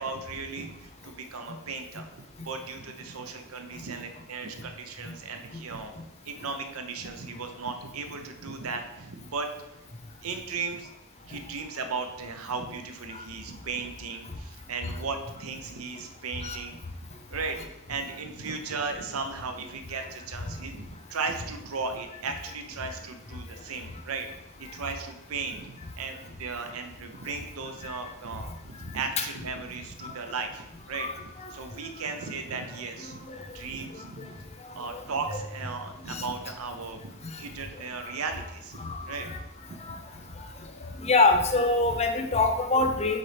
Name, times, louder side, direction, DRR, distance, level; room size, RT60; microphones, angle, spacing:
voice 1, 0.0-5.9 6.2-9.5 10.2-10.9 11.3-16.8 17.3-17.6 17.9-24.3 24.6-31.1 31.5-33.2 33.5-34.4 34.7-38.8 39.1-39.3 39.9-40.0, right 4 dB, 80° right, 6 dB, 0.7 m, -36 dB
voice 2, 38.8-39.4 41.0-43.2, left 3 dB, 30° left, 5 dB, 0.7 m, -24 dB
8.7 x 4.0 x 3.4 m, 0.91 s
head